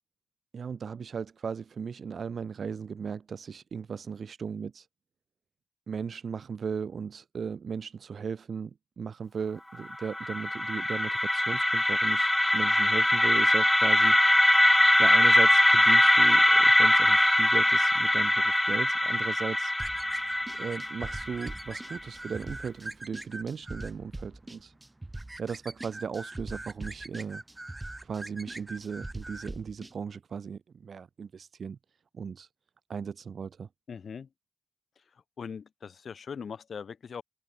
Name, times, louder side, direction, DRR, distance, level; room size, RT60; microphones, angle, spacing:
voice 1, 0.5-4.9 5.9-14.2 15.0-19.7 20.0-20.1 20.6-24.7 25.4-27.4 28.0-31.8 32.1-32.5 32.9-33.7, right 6 dB, 70° right, 6.6 m, -37 dB
sound 1, 9.9-21.9, left 1 dB, 10° left, 1.3 m, -22 dB
sound 2, 19.8-29.9, right 2 dB, 15° right, 3.1 m, -41 dB
voice 2, 33.9-34.3 35.4-37.2, left 6 dB, 70° left, 4.4 m, -40 dB
open air
wide cardioid pair, 105°, 0 cm